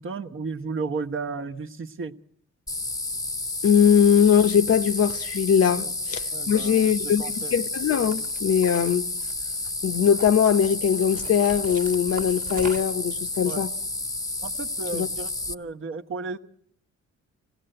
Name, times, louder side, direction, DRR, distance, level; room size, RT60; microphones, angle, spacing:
voice 1, 0.0-2.1 5.8-5.9 6.3-6.9 7.2-7.5 13.4-13.7 14.4-16.4, right 4 dB, 45° right, 1.2 m, -33 dB
sound 1, 2.7-15.5, left 2 dB, 10° left, 0.9 m, -31 dB
voice 2, 3.6-9.1 9.8-13.7 14.9-15.1, left 8 dB, 55° left, 0.9 m, -21 dB
sound 2, 7.2-7.6 8.1-9.6 9.9-10.5 11.2-13.1, right 4 dB, 25° right, 1.3 m, -42 dB
25.5 x 17.0 x 7.8 m
cardioid pair, 90°, 30 cm